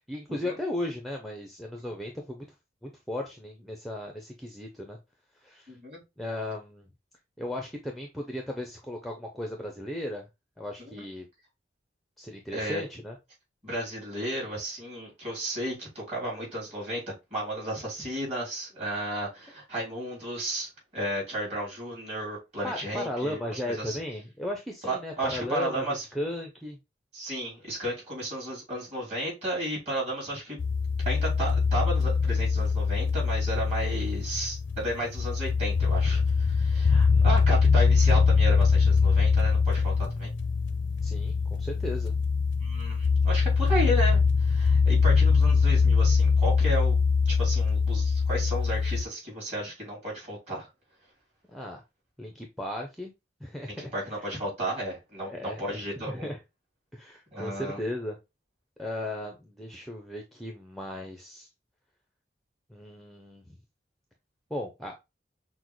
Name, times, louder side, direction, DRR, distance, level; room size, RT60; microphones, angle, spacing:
voice 1, 0.1-2.4 2.8-5.0 5.4-5.8 6.2-6.9 7.4-10.3 10.6-11.3 12.2-13.2 22.6-25.8 26.1-26.8 36.9-37.3 41.0-42.1 51.5-51.8 52.2-53.1 53.4-53.9 54.2-54.3 55.3-56.4 56.9-58.2 58.8-61.5 62.7-63.4 64.5-64.9, left 1 dB, ahead, 0.5 m, -36 dB
voice 2, 5.7-6.0 10.8-11.1 12.5-12.8 13.6-24.0 24.8-26.1 27.1-30.6 31.0-40.3 42.6-47.0 47.2-50.7 53.8-56.3 57.3-57.8, right 1 dB, 35° right, 2.7 m, -33 dB
sound 1, 30.6-49.0, left 5 dB, 85° left, 0.5 m, -23 dB
6.1 x 2.1 x 3.0 m
head